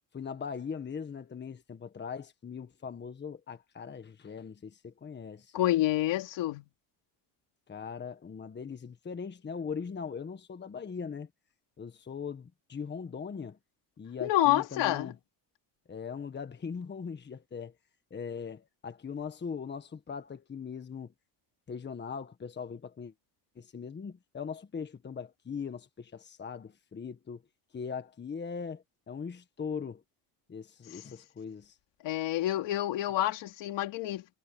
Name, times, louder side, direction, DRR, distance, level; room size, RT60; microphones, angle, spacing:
voice 1, 0.1-5.5 7.7-11.3 11.8-13.6 14.0-15.1 15.9-17.7 18.1-21.1 21.7-23.1 23.5-27.4 27.7-30.0 30.5-31.8, left 6 dB, 25° left, 1.5 m, -40 dB
voice 2, 5.5-6.7 14.2-15.1 30.9-31.0 32.0-34.4, left 14 dB, 75° left, 3.4 m, -28 dB
cardioid pair, 140°, 44 cm